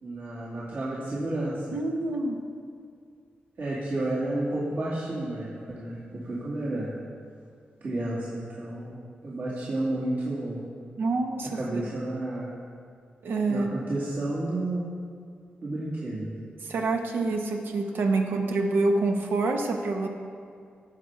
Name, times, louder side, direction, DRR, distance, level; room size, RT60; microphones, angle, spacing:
voice 1, 0.0-1.7 3.6-6.9 7.8-8.9 9.2-10.6 11.5-12.5 13.5-14.8 15.6-16.3, right 1 dB, 60° right, -8 dB, 2.3 m, -31 dB
voice 2, 1.7-2.4 11.0-11.8 13.2-13.7 16.6-20.1, right 3 dB, 80° right, 3 dB, 1.2 m, -26 dB
17.0 x 6.1 x 4.7 m, 2.3 s
wide cardioid pair, 95°, 4 cm